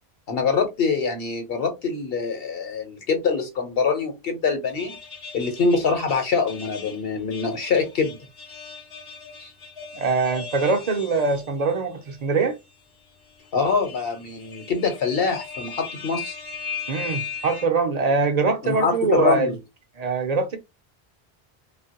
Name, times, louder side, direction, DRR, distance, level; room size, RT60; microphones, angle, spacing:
voice 1, 0.3-5.0 5.3-8.2 9.4-9.5 13.5-16.4 18.6-19.6, left 5 dB, 70° left, 1.1 m, -24 dB
sound 1, 4.7-11.7 12.2-12.3 13.3-17.6, left 5 dB, 35° left, 0.6 m, -38 dB
voice 2, 10.0-12.6 16.9-19.5 20.0-20.6, right 4 dB, 50° right, 0.5 m, -23 dB
2.9 x 2.4 x 2.8 m
omnidirectional pair, 1.0 m